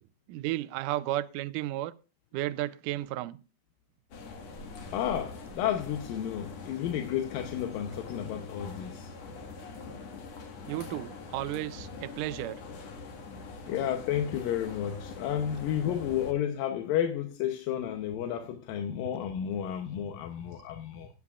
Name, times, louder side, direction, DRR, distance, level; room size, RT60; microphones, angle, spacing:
voice 1, 0.3-1.9 2.3-3.4 10.7-12.6, right 15 dB, 80° right, 2.0 m, -33 dB
sound 1, 4.1-16.3, left 4 dB, 50° left, 2.6 m, -43 dB
voice 2, 4.9-9.1 13.7-21.1, left 10 dB, 75° left, 2.5 m, -32 dB
18.0 x 9.7 x 2.4 m
omnidirectional pair, 4.3 m